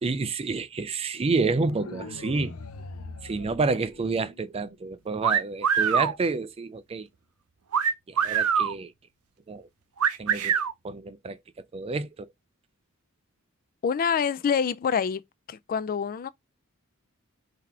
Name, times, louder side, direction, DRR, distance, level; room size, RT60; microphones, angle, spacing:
voice 1, 0.0-2.6 3.2-7.1 8.1-8.9 9.5-9.7 10.2-10.6 10.8-12.3, right 3 dB, 25° right, 0.4 m, -29 dB
sound 1, 1.7-4.7, left 3 dB, 80° left, 0.7 m, -42 dB
sound 2, 5.2-6.1 7.7-8.7 10.0-10.7, right 7 dB, 80° right, 0.6 m, -23 dB
voice 2, 13.8-15.2 15.5-16.3, left 6 dB, 40° left, 0.3 m, -26 dB
3.9 x 2.8 x 4.7 m
head